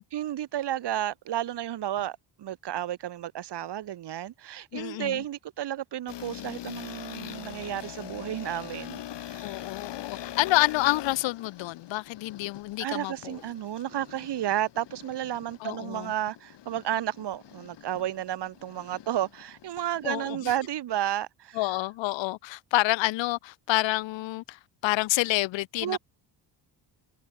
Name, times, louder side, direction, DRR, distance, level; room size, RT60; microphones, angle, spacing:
voice 1, 0.1-9.4 12.8-21.6 25.8-26.0, right 12 dB, 65° right, 2.1 m, -32 dB
voice 2, 4.7-5.2 9.4-13.4 15.6-16.1 20.0-20.5 21.5-26.0, left 19 dB, 90° left, 0.7 m, -28 dB
sound 1, 6.1-20.4, left 11 dB, 70° left, 4.8 m, -43 dB
cardioid pair, 115°, 44 cm